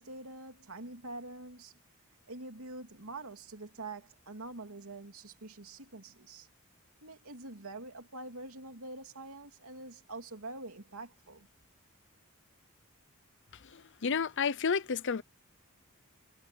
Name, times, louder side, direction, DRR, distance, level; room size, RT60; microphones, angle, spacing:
voice 1, 0.0-1.7 2.3-6.5 7.0-11.5, right 2 dB, 85° right, 2.9 m, -45 dB
voice 2, 13.7-15.2, left 5 dB, 60° left, 0.7 m, -31 dB
head